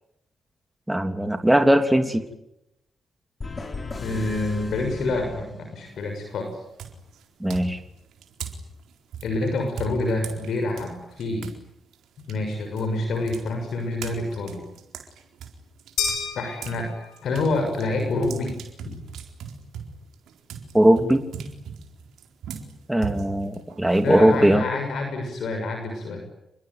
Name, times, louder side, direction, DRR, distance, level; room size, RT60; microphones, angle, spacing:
voice 1, 0.9-2.2 7.4-7.8 20.7-21.2 22.9-24.6, right 1 dB, 10° right, 7 dB, 3.2 m, -19 dB
sound 1, 3.4-6.2, left 3 dB, 40° left, 6.5 m, -37 dB
voice 2, 4.0-6.5 9.2-11.5 12.3-14.6 16.3-16.9 17.2-18.6 18.8-19.0 24.0-26.2, left 2 dB, 70° left, 4 dB, 6.4 m, -27 dB
sound 2, 5.9-6.2 6.8-11.6 11.9-16.8 17.1-24.5, right 6 dB, 80° right, 4.2 m, -39 dB
sound 3, 16.0-17.4, left 6 dB, 85° left, 7.5 m, -30 dB
28.5 x 21.5 x 9.5 m, 0.85 s
supercardioid pair, 50°, 0 cm